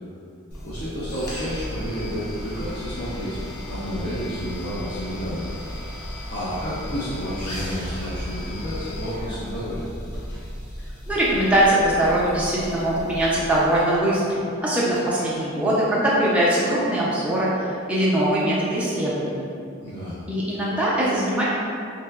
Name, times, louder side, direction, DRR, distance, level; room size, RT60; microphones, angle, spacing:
sound 1, 0.5-14.0, equal, 90° left, 0.7 m, -35 dB
voice 1, 0.6-3.4 3.7-5.5 6.3-9.9 19.8-20.2, equal, 45° left, -10 dB, 0.5 m, -30 dB
voice 2, 11.1-19.5 20.3-21.4, right 1 dB, 5° right, -7 dB, 0.4 m, -22 dB
3.2 x 2.8 x 2.3 m, 2.5 s
head